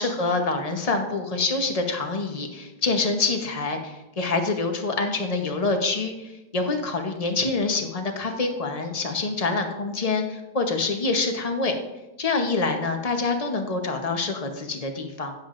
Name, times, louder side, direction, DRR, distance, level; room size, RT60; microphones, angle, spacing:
voice 1, 0.0-11.7 12.2-15.3, left 3 dB, 45° left, 4 dB, 0.4 m, -26 dB
16.0 x 7.5 x 2.6 m, 0.98 s
omnidirectional pair, 2.3 m